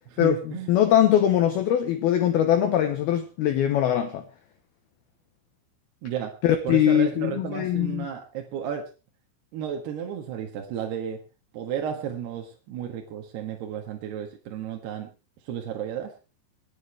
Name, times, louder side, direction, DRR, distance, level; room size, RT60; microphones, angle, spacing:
voice 1, 0.2-0.7 6.0-6.3 6.6-8.9 9.5-11.2 11.5-15.1 15.4-16.1, right 9 dB, 65° right, 3.2 m, -33 dB
voice 2, 0.7-4.2 6.4-8.1, left 10 dB, 80° left, 2.2 m, -21 dB
27.0 x 9.8 x 3.3 m
omnidirectional pair, 5.9 m